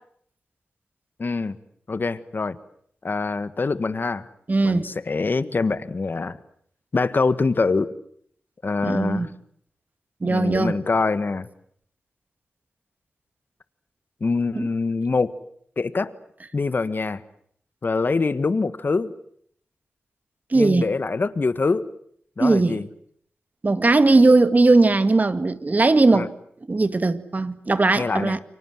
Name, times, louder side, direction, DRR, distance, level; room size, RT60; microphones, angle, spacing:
voice 1, 1.2-1.6 1.9-2.6 3.0-4.3 4.6-6.4 6.9-7.9 8.6-9.3 10.2-11.5 14.2-15.3 15.8-16.1 16.5-17.2 17.8-19.1 20.5-21.8 22.4-22.9 26.1-26.3 28.0-28.4, left 4 dB, 50° left, 1.6 m, -24 dB
voice 2, 4.5-4.9 8.8-9.3 10.2-10.8 14.6-14.7 20.5-20.9 22.4-22.8 23.6-26.3 26.7-28.4, right 3 dB, 40° right, 1.9 m, -19 dB
29.5 x 24.5 x 7.7 m
cardioid pair, 50°, 4 cm